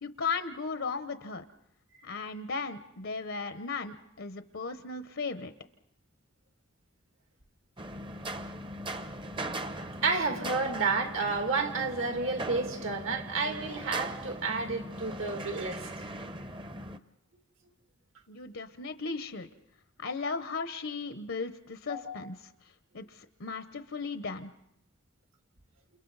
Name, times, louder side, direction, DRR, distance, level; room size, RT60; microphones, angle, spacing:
voice 1, 0.0-1.4 2.0-5.5 18.3-19.5 20.0-22.5 22.9-24.5, left 4 dB, 75° left, 9 dB, 0.9 m, -36 dB
sound 1, 7.8-17.0, right 1 dB, 25° right, 0.8 m, -39 dB
voice 2, 10.0-15.9 21.9-22.2, right 4 dB, 75° right, 4 dB, 2.5 m, -31 dB
29.5 x 28.5 x 4.0 m, 0.81 s
head